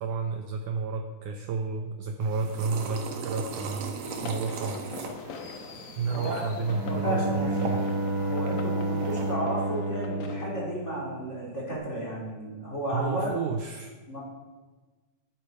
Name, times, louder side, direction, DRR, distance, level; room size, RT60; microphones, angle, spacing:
voice 1, 0.0-4.9 6.0-7.8 12.9-13.9, right 4 dB, 80° right, 4 dB, 1.8 m, -31 dB
sound 1, 2.2-9.3, right 4 dB, 60° right, 2.0 m, -39 dB
sound 2, 4.0-10.5, left 6 dB, 90° left, 1.5 m, -43 dB
voice 2, 6.1-7.6 8.2-13.3 14.1-14.2, equal, 15° left, -5 dB, 4.1 m, -33 dB
Bowed string instrument, 6.7-11.5, right 1 dB, 30° right, 3.2 m, -30 dB
13.5 x 12.5 x 4.8 m, 1.3 s
omnidirectional pair, 4.7 m